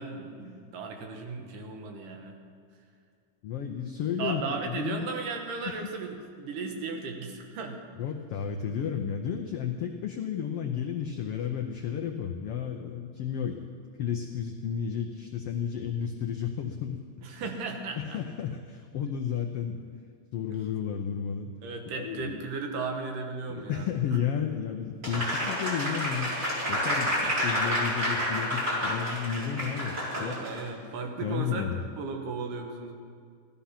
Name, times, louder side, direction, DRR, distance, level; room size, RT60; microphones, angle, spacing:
voice 1, 0.0-2.4 4.2-7.8 17.2-18.2 20.5-20.6 21.6-23.9 28.9-29.0 30.1-32.9, right 4 dB, 85° right, 3 dB, 3.0 m, -36 dB
voice 2, 3.4-5.1 5.6-5.7 8.0-13.6 14.0-17.0 18.0-19.8 20.3-21.5 21.9-22.4 23.5-26.3 26.7-30.4 31.2-31.8, left 8 dB, 85° left, 3 dB, 1.3 m, -32 dB
Applause, 25.0-30.6, equal, 30° right, 4.3 m, -29 dB
16.5 x 12.5 x 5.8 m, 2.2 s
omnidirectional pair, 3.7 m